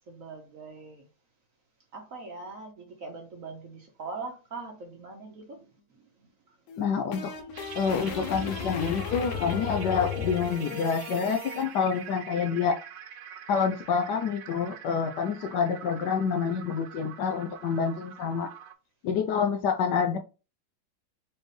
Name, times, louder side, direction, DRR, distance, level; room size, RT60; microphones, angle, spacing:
voice 1, 0.1-1.1 1.9-6.6, right 3 dB, 60° right, 0.9 m, -42 dB
sound 1, 6.7-11.6, left 5 dB, 85° left, 1.6 m, -35 dB
voice 2, 6.8-7.3 7.7-12.8 13.5-18.5 19.0-20.2, left 6 dB, 70° left, 1.2 m, -27 dB
sound 2, 7.5-18.7, right 8 dB, 75° right, 1.3 m, -45 dB
4.3 x 3.3 x 3.2 m
omnidirectional pair, 2.1 m